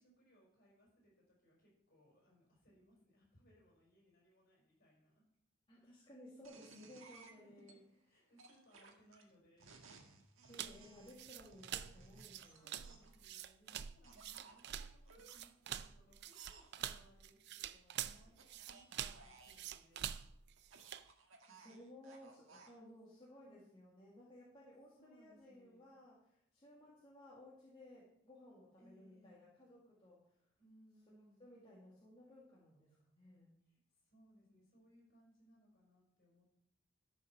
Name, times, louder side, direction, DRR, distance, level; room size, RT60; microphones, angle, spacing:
voice 1, 0.0-5.2 7.2-7.8 8.1-9.9 12.3-20.3 22.2-22.3 23.4-23.8 25.0-25.9 28.8-29.4 30.6-31.5 33.7-36.6, equal, 45° left, -2 dB, 5.2 m, -68 dB
voice 2, 5.7-7.8 10.5-12.9 21.4-30.5 31.2-33.5, left 1 dB, 25° left, -6 dB, 2.0 m, -59 dB
sound 1, 6.4-7.7 8.4-13.2 14.0-15.4 16.3-16.7 18.0-19.7 20.6-22.8, right 4 dB, 70° right, 1.6 m, -61 dB
sound 2, 10.5-21.1, right 10 dB, 50° right, 0.4 m, -46 dB
12.5 x 5.6 x 5.8 m, 0.75 s
head